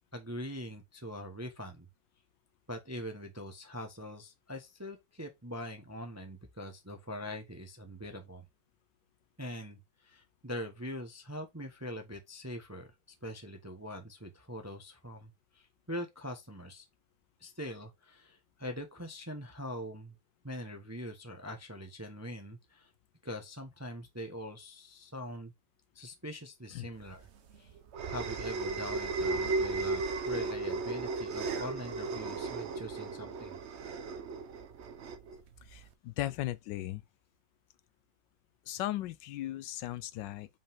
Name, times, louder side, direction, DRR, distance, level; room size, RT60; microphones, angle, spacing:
voice 1, 0.1-1.9 2.7-8.4 9.4-12.9 13.2-16.9 17.4-20.1 20.4-22.9 23.2-25.5 25.9-27.3 27.6-27.7 28.1-33.5, equal, 15° right, 0.6 m, -43 dB
sound 1, 27.1-35.9, right 3 dB, 60° right, 0.7 m, -35 dB
voice 2, 35.7-37.0 38.7-40.5, left 14 dB, 75° left, 1.2 m, -37 dB
5.5 x 5.1 x 3.5 m
omnidirectional pair, 2.1 m